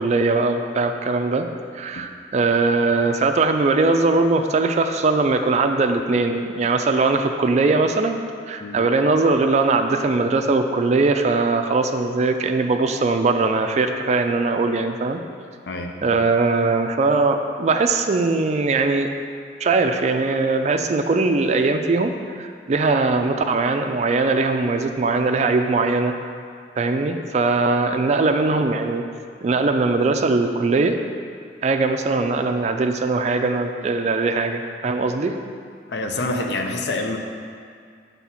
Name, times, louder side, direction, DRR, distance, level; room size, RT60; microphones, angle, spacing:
voice 1, 0.0-1.5 1.7-8.2 8.5-15.2 16.0-19.1 19.6-22.1 22.4-26.1 26.8-29.0 29.4-31.0 31.6-35.3, right 3 dB, 40° right, 6 dB, 0.3 m, -20 dB
voice 2, 35.9-37.2, left 2 dB, 70° left, 3 dB, 0.5 m, -26 dB
6.0 x 3.4 x 5.7 m, 2.2 s
head